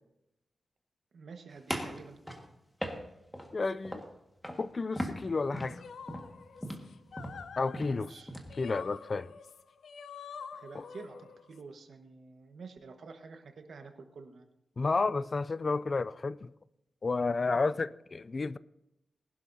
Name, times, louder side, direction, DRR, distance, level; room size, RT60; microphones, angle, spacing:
voice 1, 1.1-2.2 7.9-8.3 10.5-14.5 17.5-17.7, right 4 dB, 70° right, 1.4 m, -49 dB
sound 1, 1.7-3.5 3.8-4.2 4.4-4.7 5.0-8.6, equal, 5° left, 1.7 m, -38 dB
voice 2, 3.5-4.0 4.6-5.8 7.6-8.1 8.6-9.3 10.7-10.8 14.8-16.5 17.0-18.6, left 3 dB, 35° left, 0.3 m, -31 dB
sound 2, 5.7-11.6, left 6 dB, 80° left, 0.6 m, -47 dB
20.0 x 11.5 x 2.8 m
wide cardioid pair, 130°, 0 cm